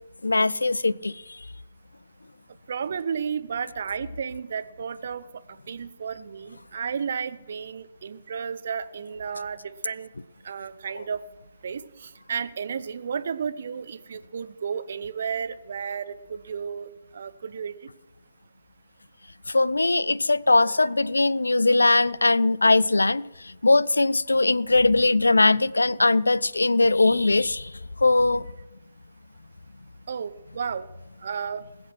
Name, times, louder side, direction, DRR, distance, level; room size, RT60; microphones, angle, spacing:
voice 1, 0.2-1.1 19.5-23.3 23.6-27.7 28.0-28.4, left 2 dB, 75° left, 0.4 m, -20 dB
voice 2, 2.7-5.2 5.7-10.1 10.4-11.2 11.6-17.7 30.1-30.8 31.2-31.6, right 6 dB, 50° right, 0.8 m, -32 dB
20.0 x 7.9 x 6.1 m
figure-of-eight pair, 130°, 0 cm